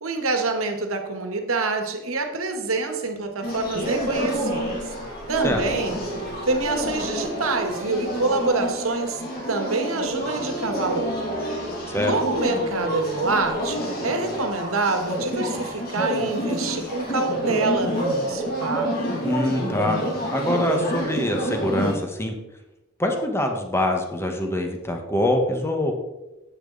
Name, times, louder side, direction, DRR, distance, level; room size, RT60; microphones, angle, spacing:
voice 1, 0.0-4.6 5.3-6.0 6.5-9.2 9.5-11.2 12.0-18.9, right 3 dB, 85° right, 5 dB, 1.5 m, -26 dB
sound 1, 3.4-21.9, equal, 45° left, 2.5 m, -28 dB
voice 2, 19.2-20.0 20.3-22.3 23.0-25.9, left 1 dB, 10° left, 3 dB, 1.3 m, -24 dB
10.0 x 8.5 x 4.0 m, 0.99 s
head